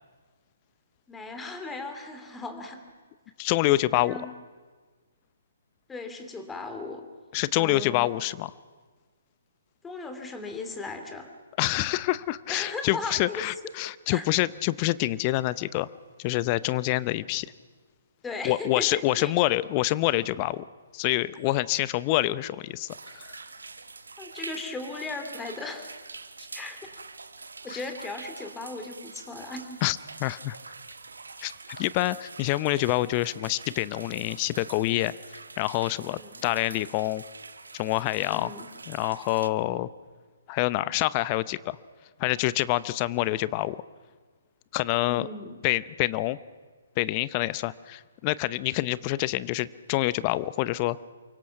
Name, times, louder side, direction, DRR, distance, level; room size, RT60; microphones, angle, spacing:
voice 1, 1.1-2.8 3.9-4.3 5.9-7.0 7.6-8.1 9.8-11.3 12.5-13.4 14.1-14.3 18.2-19.3 24.2-25.9 26.4-26.8 27.6-29.8 36.0-36.4 38.3-38.7 45.1-45.5, left 3 dB, 10° left, 6 dB, 2.8 m, -37 dB
voice 2, 3.4-4.2 7.3-8.5 11.6-15.9 16.2-17.5 18.4-20.6 20.9-23.4 27.7-27.8 29.8-30.6 31.4-35.1 35.6-37.2 37.7-38.5 38.9-39.9 40.5-41.8 42.2-43.8 44.7-45.3 45.6-46.4 47.0-51.0, left 17 dB, 30° left, 18 dB, 0.8 m, -27 dB
sound 1, 22.9-39.5, right 4 dB, 80° right, 1.3 m, -45 dB
28.5 x 24.0 x 5.9 m, 1.4 s
figure-of-eight pair, 135°, 0 cm